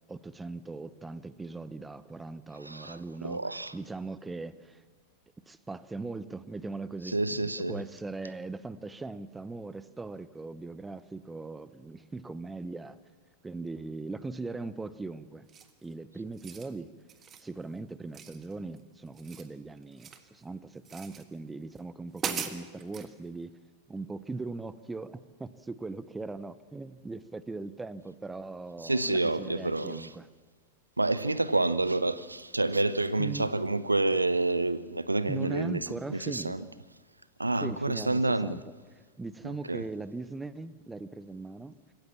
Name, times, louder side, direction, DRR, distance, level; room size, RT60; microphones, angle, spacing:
voice 1, 0.1-4.8 5.5-13.0 13.4-15.5 15.8-16.9 17.4-23.5 23.9-30.3 33.2-33.6 35.3-36.7 37.6-38.6 38.9-41.8, right 3 dB, 10° right, 0.8 m, -40 dB
voice 2, 2.7-3.7 7.1-7.7 28.8-30.1 31.0-35.8 36.1-36.6 37.4-38.6 39.7-39.8, right 2 dB, 80° right, 0.7 m, -28 dB
sound 1, 15.5-15.8 16.3-16.7 17.1-17.5 18.1-18.8 19.1-20.3 20.8-21.2 21.8-21.9 22.1-23.1, right 7 dB, 25° right, 1.6 m, -39 dB
26.0 x 15.0 x 7.3 m
figure-of-eight pair, 90°, 0 cm